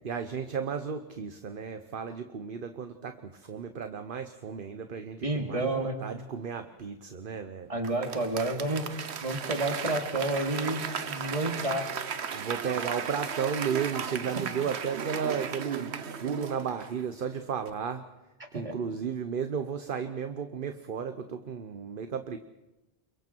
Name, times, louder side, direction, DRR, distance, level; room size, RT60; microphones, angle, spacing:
voice 1, 0.0-7.7 12.3-18.0 18.5-22.4, right 7 dB, 55° right, 8 dB, 1.1 m, -34 dB
voice 2, 5.2-6.0 7.7-8.9 9.2-11.9 18.5-18.7, right 2 dB, 30° right, 3 dB, 2.6 m, -30 dB
Applause / Crowd, 7.8-17.3 17.7-17.8, right 7 dB, 85° right, 1.2 m, -36 dB
28.0 x 23.5 x 4.5 m, 0.99 s
omnidirectional pair, 1.1 m